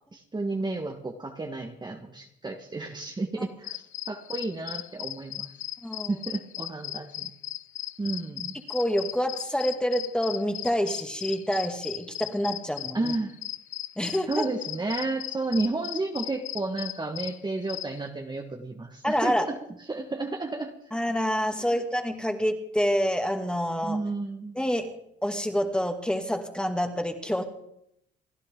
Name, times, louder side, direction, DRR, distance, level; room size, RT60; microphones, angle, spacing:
voice 1, 0.1-3.8 4.1-5.5 6.1-7.3 8.0-8.5 12.9-13.4 14.3-19.6 19.9-20.7 21.7-21.8 23.8-24.6, right 2 dB, 20° right, 3 dB, 1.6 m, -32 dB
sound 1, 3.6-18.0, left 14 dB, 85° left, 0.6 m, -37 dB
voice 2, 5.8-6.2 8.7-13.1 14.0-14.5 19.0-19.5 20.9-24.0 24.6-24.9 25.2-27.4, equal, 5° left, 5 dB, 2.2 m, -27 dB
28.5 x 11.0 x 3.8 m, 0.76 s
cardioid pair, 90°, 20 cm